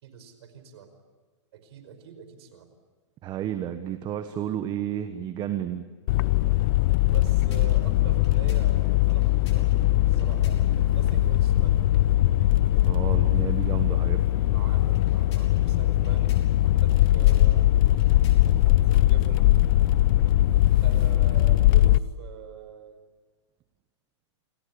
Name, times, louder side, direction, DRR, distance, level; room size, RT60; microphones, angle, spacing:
voice 1, 0.0-0.9 1.5-2.7 7.1-9.7 10.1-10.6 10.9-11.7 14.4-16.3 16.6-17.8 18.7-19.5 20.8-23.0, right 7 dB, 60° right, 9 dB, 5.3 m, -43 dB
voice 2, 3.2-5.8 12.8-14.3, right 10 dB, 30° right, 9 dB, 1.4 m, -31 dB
sound 1, 6.1-22.0, left 15 dB, 50° left, 0.7 m, -21 dB
sound 2, 7.0-10.9 14.8-18.7, left 6 dB, 70° left, 6.3 m, -54 dB
28.5 x 19.5 x 8.7 m, 1.3 s
hypercardioid pair, 130°, 15 cm